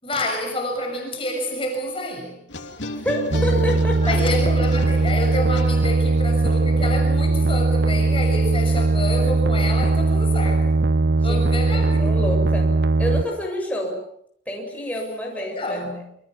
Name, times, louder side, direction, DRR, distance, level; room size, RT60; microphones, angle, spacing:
voice 1, 0.0-2.4 4.0-10.8 11.2-12.2 15.3-16.0, left 1 dB, 30° left, 2 dB, 6.6 m, -28 dB
sound 1, 2.5-6.2, left 2 dB, 80° left, 3.0 m, -34 dB
voice 2, 3.0-4.2 11.2-11.4 12.0-14.0 14.5-15.8, equal, 10° left, 0 dB, 7.5 m, -28 dB
sound 2, 3.3-13.2, right 3 dB, 60° right, 1.0 m, -19 dB
28.5 x 26.0 x 7.4 m, 0.71 s
head